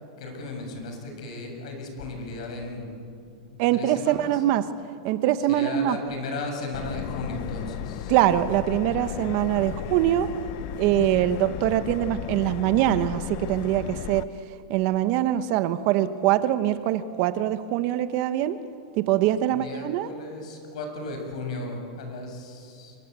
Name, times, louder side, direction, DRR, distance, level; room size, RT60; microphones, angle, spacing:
voice 1, 0.0-2.9 3.2-4.5 5.4-8.2 19.5-23.0, left 2 dB, 70° left, 3 dB, 7.4 m, -36 dB
voice 2, 3.6-4.7 5.0-6.0 8.1-10.3 10.8-14.3 14.7-18.6 19.0-20.1, right 12 dB, 40° right, 12 dB, 1.1 m, -23 dB
Subway metro underground, 6.7-14.2, left 14 dB, 40° left, 0.7 m, -35 dB
27.0 x 24.0 x 8.3 m, 2.6 s
supercardioid pair, 155°, 4 cm